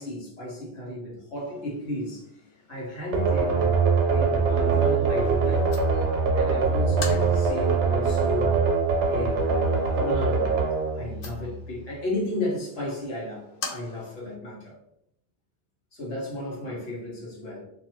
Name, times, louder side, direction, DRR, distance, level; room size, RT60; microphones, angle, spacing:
voice 1, 0.0-2.3 2.7-5.8 6.3-8.6 9.1-10.5 10.9-14.8 15.9-17.6, left 1 dB, 85° left, -4 dB, 1.4 m, -34 dB
sound 1, 1.4-14.4, left 4 dB, 60° left, 0.7 m, -45 dB
sound 2, 3.1-11.8, right 4 dB, 85° right, 0.9 m, -23 dB
2.6 x 2.5 x 3.0 m, 0.79 s
omnidirectional pair, 1.2 m